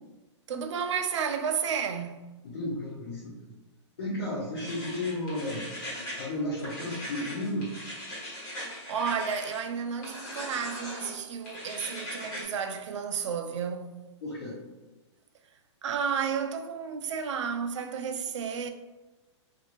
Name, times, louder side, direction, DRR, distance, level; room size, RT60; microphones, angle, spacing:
voice 1, 0.5-2.3 8.9-14.0 15.8-18.7, right 6 dB, 75° right, 0.4 m, -32 dB
voice 2, 2.4-3.5 4.0-5.7 6.2-7.7 14.2-14.6, left 1 dB, 60° left, 0.9 m, -33 dB
sound 1, 4.6-6.3 6.6-9.6 10.0-11.1 11.4-12.4, equal, 25° left, 1.1 m, -39 dB
2.6 x 2.5 x 2.9 m
hypercardioid pair, 175°, 15 cm